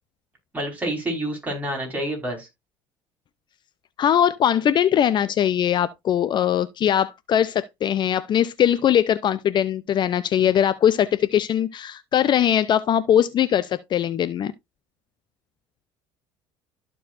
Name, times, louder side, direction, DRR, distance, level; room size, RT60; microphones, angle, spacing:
voice 1, 0.5-2.5, right 1 dB, 15° right, 4.9 m, -28 dB
voice 2, 4.0-14.5, left 10 dB, 45° left, 0.5 m, -21 dB
13.5 x 4.6 x 2.5 m
hypercardioid pair, 80°, 11 cm